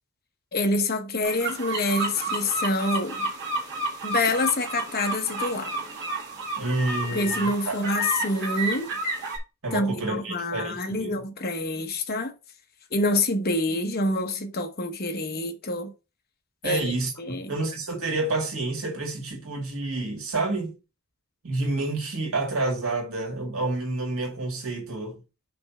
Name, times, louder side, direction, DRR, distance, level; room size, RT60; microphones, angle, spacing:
voice 1, 0.5-3.3 4.0-5.7 7.1-8.9 9.7-12.3 12.9-15.9 16.6-16.9 17.2-17.5, left 2 dB, 45° left, 0.9 m, -27 dB
sound 1, 1.2-9.4, right 1 dB, 55° right, 1.9 m, -31 dB
voice 2, 6.6-7.8 9.6-11.2 16.6-17.1 17.5-20.7 21.4-25.2, right 2 dB, 70° right, 2.1 m, -29 dB
5.2 x 3.4 x 5.4 m
head